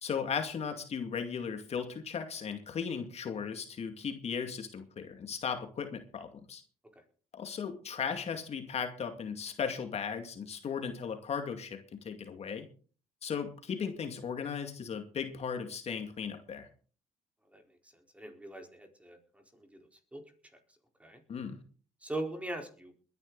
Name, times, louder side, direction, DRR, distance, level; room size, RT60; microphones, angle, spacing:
voice 1, 0.0-6.6 7.3-12.7 13.2-16.7 21.3-21.6, left 6 dB, 50° left, 6 dB, 2.4 m, -36 dB
voice 2, 18.1-19.4 20.1-20.2 21.0-21.2 22.0-22.9, right 2 dB, 10° right, 4 dB, 4.3 m, -40 dB
21.5 x 10.5 x 4.1 m, 0.41 s
cardioid pair, 85°, 13 cm